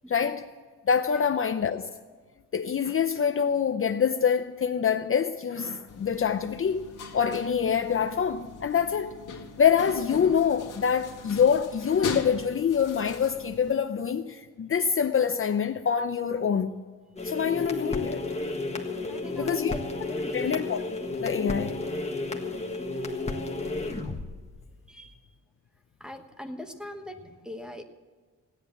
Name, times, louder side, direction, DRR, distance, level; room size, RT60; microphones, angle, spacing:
voice 1, 0.1-0.4 0.9-1.9 2.5-9.2 9.6-16.7 17.2-18.2 19.4-19.7 20.3-20.8 21.2-21.8, left 7 dB, 40° left, 0.6 m, -25 dB
sound 1, 5.9-13.7, left 5 dB, 70° left, 1.8 m, -40 dB
sound 2, 17.2-25.1, left 2 dB, 20° left, 1.5 m, -33 dB
voice 2, 19.1-19.8 20.1-20.6 24.9-25.2 26.0-27.8, left 1 dB, ahead, 1.2 m, -41 dB
16.5 x 10.5 x 7.1 m
wide cardioid pair, 155°, 32 cm